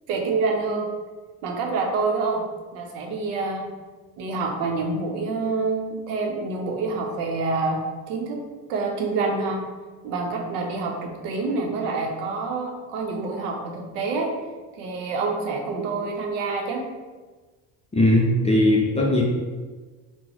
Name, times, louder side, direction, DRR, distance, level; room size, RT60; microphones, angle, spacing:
voice 1, 0.1-0.9 1.4-2.5 2.7-3.7 4.2-7.8 8.1-8.4 8.7-9.6 10.0-14.3 14.7-16.8, right 3 dB, 85° right, 1 dB, 0.6 m, -27 dB
voice 2, 17.9-19.2, left 1 dB, 15° left, -2 dB, 0.4 m, -19 dB
2.9 x 2.0 x 3.8 m, 1.3 s
supercardioid pair, 80°, 43 cm